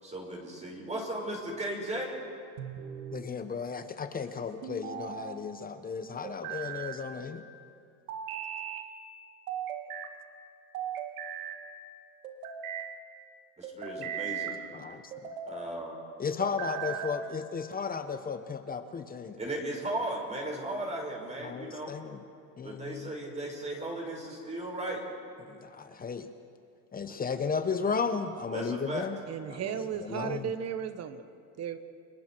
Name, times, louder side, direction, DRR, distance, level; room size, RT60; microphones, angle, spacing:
voice 1, 0.0-2.2 13.6-14.6 15.5-16.0 19.4-22.0 22.6-25.0 28.5-29.1, right 1 dB, 15° right, -1 dB, 5.2 m, -36 dB
sound 1, 2.6-3.3 4.6-5.4 6.2-7.0 8.1-8.9 9.5-10.1 10.7-11.6 12.2-12.9 13.6-14.6 15.1-15.6 16.4-17.2, right 8 dB, 85° right, 2.1 m, -38 dB
voice 2, 3.1-7.4 14.0-14.1 14.7-15.0 16.2-19.4 21.4-22.2 22.6-23.1 25.5-26.3 26.9-29.2 29.5-30.5, left 5 dB, 20° left, 9 dB, 1.0 m, -34 dB
voice 3, 29.3-31.3 31.6-31.8, right 8 dB, 35° right, 10 dB, 1.5 m, -35 dB
29.5 x 22.5 x 4.6 m, 2.4 s
supercardioid pair, 115°, 42 cm